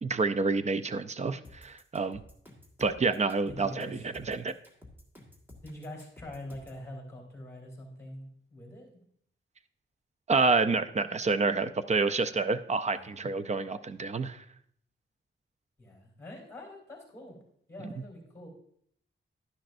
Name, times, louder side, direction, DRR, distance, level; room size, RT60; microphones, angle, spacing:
voice 1, 0.0-2.2 2.8-4.5 10.3-14.4 17.8-17.9, right 4 dB, 35° right, 11 dB, 0.5 m, -28 dB
sound 1, 1.4-6.8, left 1 dB, 10° right, 1.7 m, -52 dB
voice 2, 3.5-4.1 5.6-9.0 12.9-13.2 15.8-17.4 17.7-18.5, left 1 dB, 15° left, 0 dB, 3.2 m, -45 dB
11.5 x 10.0 x 2.6 m, 0.67 s
wide cardioid pair, 150°, 21 cm